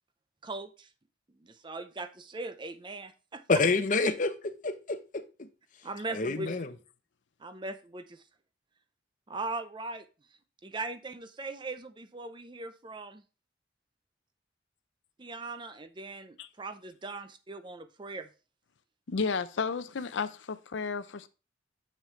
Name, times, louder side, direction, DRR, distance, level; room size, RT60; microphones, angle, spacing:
voice 1, 0.4-0.9 1.4-3.4 5.8-6.5 7.4-8.2 9.3-10.1 10.6-13.2 15.2-18.3, right 3 dB, 25° right, 0.5 m, -39 dB
voice 2, 3.5-4.3 4.6-5.5 6.1-6.7, left 3 dB, 45° left, 0.7 m, -28 dB
voice 3, 19.1-21.3, left 5 dB, 90° left, 0.6 m, -32 dB
6.6 x 6.5 x 3.2 m
head